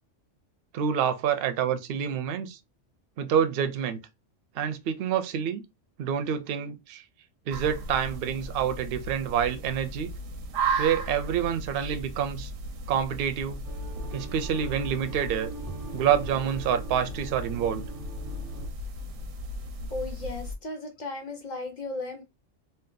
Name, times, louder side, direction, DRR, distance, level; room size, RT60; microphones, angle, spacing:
voice 1, 0.7-2.6 3.2-4.0 4.5-5.6 6.0-7.0 7.5-10.1 10.8-12.5 12.9-13.6 14.1-15.5 15.9-17.8, right 8 dB, 60° right, 0.6 m, -27 dB
sound 1, 7.5-20.6, right 3 dB, 90° right, 1.0 m, -36 dB
sound 2, 13.6-18.7, right 1 dB, 20° right, 0.6 m, -41 dB
voice 2, 19.9-22.2, left 2 dB, 50° left, 0.6 m, -35 dB
2.7 x 2.2 x 3.7 m
omnidirectional pair, 1.3 m